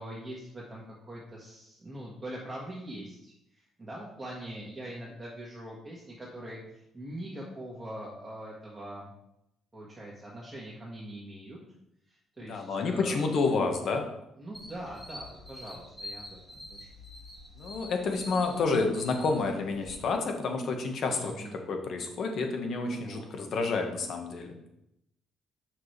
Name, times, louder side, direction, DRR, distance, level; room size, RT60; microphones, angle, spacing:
voice 1, 0.0-9.1 9.7-11.6 12.1-13.3 14.4-16.9 21.0-21.6 22.8-23.2, right 1 dB, 20° right, -5 dB, 1.7 m, -43 dB
voice 2, 12.5-14.0 17.6-24.5, left 4 dB, 60° left, 4 dB, 1.4 m, -29 dB
sound 1, 14.5-19.9, left 1 dB, 10° left, 1.9 m, -46 dB
7.5 x 6.0 x 3.3 m, 0.82 s
cardioid pair, 95°, 0 cm